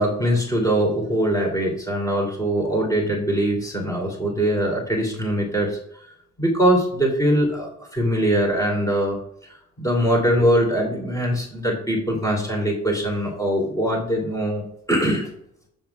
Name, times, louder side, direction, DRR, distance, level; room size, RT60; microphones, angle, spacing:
voice 1, 0.0-5.8 6.4-9.2 9.8-15.3, equal, 10° left, -1 dB, 2.9 m, -22 dB
7.6 x 7.1 x 2.3 m, 0.72 s
cardioid pair, 90°, 30 cm